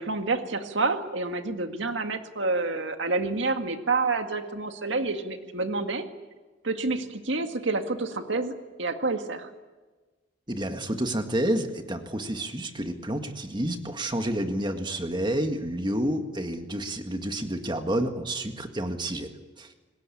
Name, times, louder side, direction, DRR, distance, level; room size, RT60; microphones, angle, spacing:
voice 1, 0.0-6.0 6.6-9.5, right 3 dB, 70° right, 6 dB, 2.0 m, -28 dB
voice 2, 10.5-19.3 19.6-19.7, right 1 dB, 25° right, 6 dB, 1.9 m, -29 dB
26.5 x 20.0 x 8.7 m, 1.3 s
head